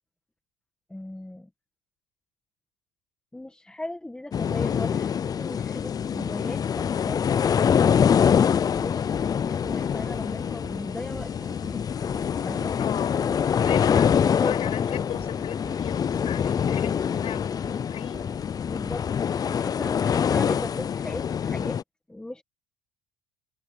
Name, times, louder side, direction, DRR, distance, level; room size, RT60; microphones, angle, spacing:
voice 1, 0.9-1.5 3.3-7.2 8.8-9.1 9.4-11.8 12.4-12.7 14.2-14.5 18.6-19.1 19.5-21.8 22.1-22.4, left 1 dB, 5° left, 1.5 m, -38 dB
sound 1, 4.3-21.8, left 7 dB, 30° left, 0.5 m, -25 dB
sound 2, 9.1-18.4, right 6 dB, 30° right, 4.3 m, -49 dB
voice 2, 12.8-13.1 13.6-17.5 17.9-18.2, left 11 dB, 50° left, 5.5 m, -37 dB
supercardioid pair, 110°, 13 cm